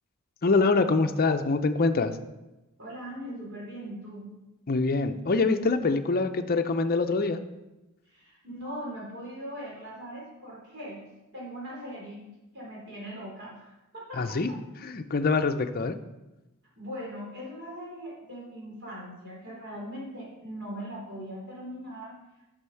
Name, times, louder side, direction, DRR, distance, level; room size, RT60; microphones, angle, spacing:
voice 1, 0.4-2.2 4.7-7.4 14.2-14.5 14.8-16.0, left 3 dB, 40° left, 8 dB, 0.6 m, -25 dB
voice 2, 2.8-4.3 8.1-11.0 11.3-14.6 16.8-22.2, equal, 50° right, -4 dB, 3.6 m, -40 dB
8.0 x 6.3 x 5.7 m, 1.0 s
head